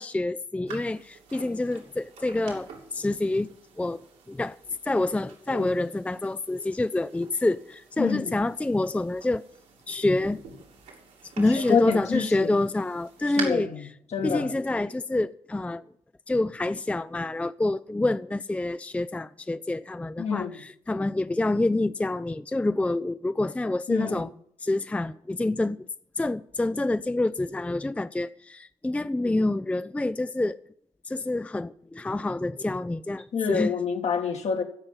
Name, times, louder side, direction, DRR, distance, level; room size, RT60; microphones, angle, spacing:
voice 1, 0.0-3.5 3.8-4.0 4.3-4.6 4.8-9.5 9.9-10.4 11.4-13.9 14.2-15.8 16.3-24.3 24.6-25.9 26.2-30.6 31.1-33.7, left 2 dB, 10° left, 0.4 m, -27 dB
sound 1, 0.7-13.4, right 6 dB, 80° right, 2.8 m, -46 dB
voice 2, 8.0-8.4 11.7-12.6 13.3-13.9 14.1-14.5 20.2-20.6 23.9-24.3 33.3-34.6, left 6 dB, 60° left, 1.7 m, -27 dB
15.5 x 5.4 x 9.1 m
hypercardioid pair, 45°, 13 cm